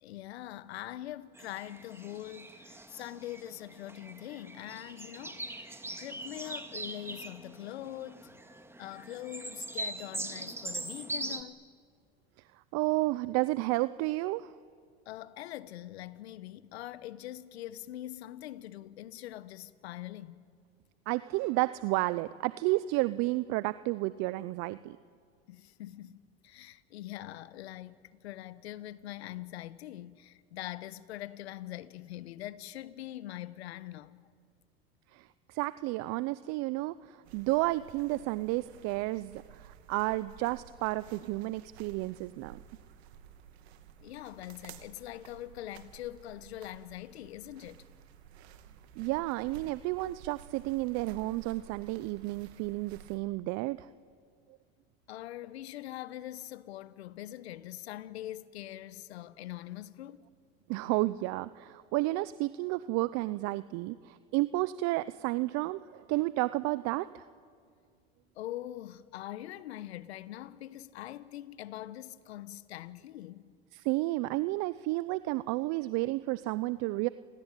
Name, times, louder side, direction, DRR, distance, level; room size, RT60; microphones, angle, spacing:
voice 1, 0.0-5.7 6.0-8.3 8.8-11.7 15.1-20.4 25.5-26.2 26.4-34.2 44.0-47.8 55.1-60.2 68.3-73.5, left 14 dB, 85° left, 1.1 m, -43 dB
sound 1, 1.3-11.4, right 1 dB, 10° right, 2.1 m, -42 dB
voice 2, 12.7-14.5 21.1-25.0 35.1-42.6 48.4-48.6 49.0-53.9 60.7-67.3 73.7-77.1, right 19 dB, 55° right, 0.8 m, -31 dB
sound 2, 37.2-53.2, right 9 dB, 85° right, 2.4 m, -53 dB
29.0 x 21.5 x 9.1 m
hypercardioid pair, 95°, 32 cm